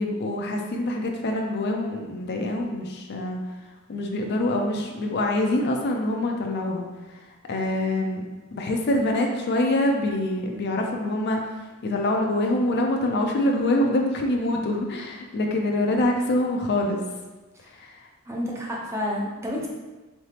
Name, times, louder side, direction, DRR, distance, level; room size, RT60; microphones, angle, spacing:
voice 1, 0.0-3.4 3.9-7.2 7.5-8.2 8.5-17.0 17.7-18.0, left 1 dB, 50° left, 2 dB, 0.4 m, -25 dB
voice 2, 18.3-19.7, left 1 dB, 10° right, -3 dB, 0.5 m, -29 dB
3.8 x 3.3 x 2.8 m, 1.2 s
head